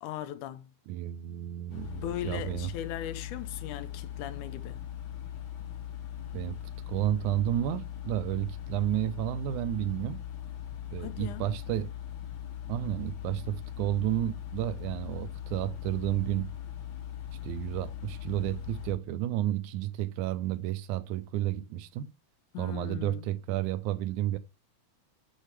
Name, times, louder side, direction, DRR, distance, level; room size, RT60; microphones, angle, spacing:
voice 1, 0.0-0.7 1.9-4.8 11.0-11.5 22.5-23.3, left 11 dB, 85° left, 2.2 m, -38 dB
voice 2, 0.9-2.7 6.3-6.6 6.9-10.2 10.9-11.9 12.7-16.5 17.4-22.1 22.6-24.4, right 13 dB, 85° right, 2.0 m, -31 dB
sound 1, 1.7-18.9, left 10 dB, 65° left, 1.2 m, -40 dB
6.5 x 6.4 x 3.2 m
omnidirectional pair, 3.5 m